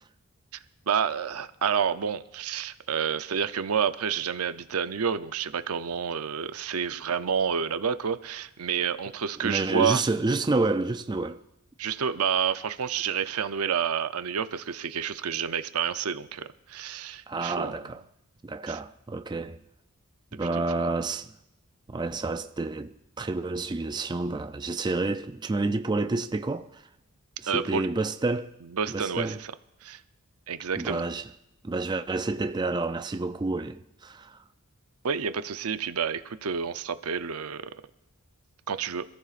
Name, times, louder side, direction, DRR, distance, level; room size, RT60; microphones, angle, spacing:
voice 1, 0.9-10.0 11.8-17.7 18.7-18.8 20.7-20.9 27.5-27.9 28.7-29.4 29.8-30.0 30.5-31.0 35.0-37.7 38.7-39.0, right 7 dB, 80° right, 0.6 m, -29 dB
voice 2, 9.4-11.4 17.3-18.0 18.4-19.6 20.3-21.3 21.9-26.9 27.4-28.5 28.9-29.4 30.8-31.3 31.6-34.4, right 3 dB, 20° right, 0.4 m, -29 dB
26.0 x 14.0 x 2.5 m
head